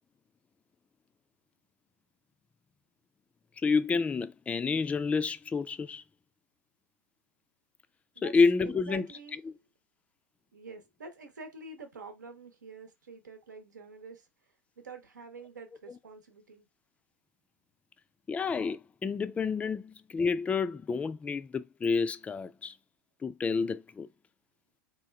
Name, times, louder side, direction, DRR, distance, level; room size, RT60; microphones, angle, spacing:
voice 1, 3.6-6.0 8.2-9.1 18.3-22.7 23.2-24.1, left 4 dB, 15° left, 0.4 m, -29 dB
voice 2, 8.6-9.4 10.5-14.3 14.8-16.7, right 4 dB, 85° right, 0.9 m, -47 dB
3.6 x 2.3 x 3.3 m
hypercardioid pair, 100°, 9 cm